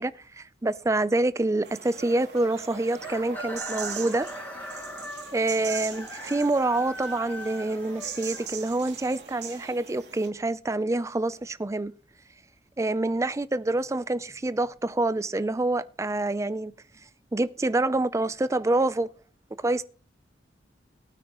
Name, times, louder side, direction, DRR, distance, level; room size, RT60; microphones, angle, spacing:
voice 1, 0.0-4.3 5.3-11.9 12.8-16.7 17.3-19.1 19.6-19.8, right 2 dB, 15° right, 0.4 m, -26 dB
sound 1, 1.6-10.3, right 6 dB, 75° right, 2.5 m, -41 dB
Chicken rooster, 3.0-8.9, equal, 10° left, 1.4 m, -40 dB
18.5 x 9.2 x 3.0 m
head